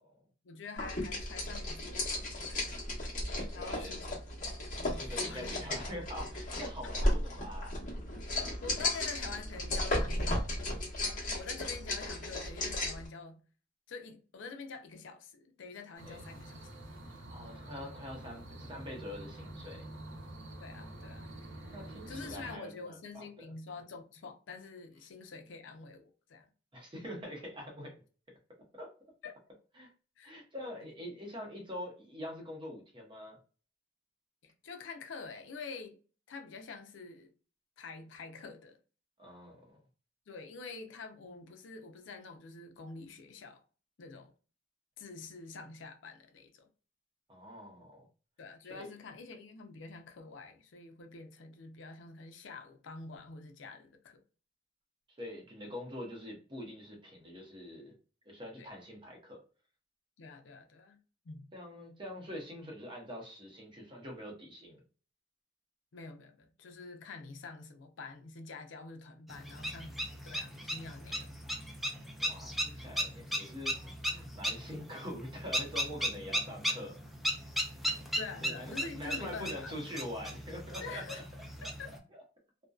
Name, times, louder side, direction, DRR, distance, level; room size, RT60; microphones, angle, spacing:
voice 1, 0.4-2.7 3.5-4.2 4.8-5.7 7.0-7.1 8.6-10.4 11.0-13.4 13.9-16.7 20.6-21.3 22.1-26.5 29.2-29.4 30.2-30.3 34.4-36.0 36.3-37.3 37.8-38.8 40.3-43.6 44.0-44.3 45.0-46.7 48.4-54.2 58.6-58.7 60.2-61.0 61.2-61.5 65.9-71.3 78.2-79.8 80.8-81.2 81.8-81.9, left 4 dB, 75° left, 0.5 m, -47 dB
sound 1, 0.8-13.1, left 1 dB, 45° left, 1.0 m, -35 dB
voice 2, 3.2-4.0 4.7-7.7 11.3-11.4 16.0-16.2 17.1-19.8 21.7-23.5 26.7-27.9 28.7-28.9 29.8-29.9 30.2-33.4 39.2-39.6 47.3-48.1 48.7-48.9 55.2-57.9 58.3-59.4 61.5-64.8 72.2-77.0 78.4-81.2 81.6-81.7 82.1-82.2, left 1 dB, 25° right, 0.8 m, -44 dB
sound 2, 15.9-22.6, right 1 dB, 80° right, 0.7 m, -47 dB
sound 3, 69.3-82.0, equal, ahead, 0.4 m, -37 dB
2.5 x 2.1 x 2.3 m
head